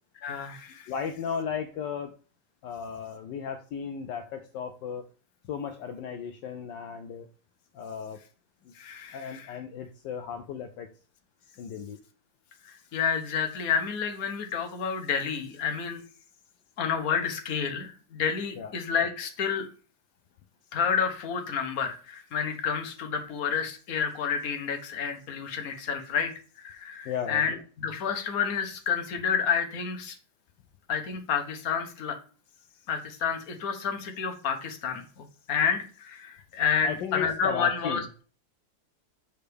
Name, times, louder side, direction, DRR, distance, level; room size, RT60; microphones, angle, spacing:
voice 1, 0.2-0.9 8.7-9.6 12.6-16.0 16.8-19.7 20.7-26.3 26.6-30.1 30.9-32.2 32.9-38.0, left 6 dB, 55° left, 5 dB, 1.4 m, -30 dB
voice 2, 0.9-2.1 2.6-5.0 5.5-7.3 7.7-8.2 8.6-8.7 9.1-10.9 11.6-12.0 18.6-18.7 27.0-27.5 36.8-38.2, left 7 dB, 75° left, 6 dB, 1.2 m, -35 dB
6.5 x 5.6 x 3.4 m, 0.38 s
omnidirectional pair, 2.1 m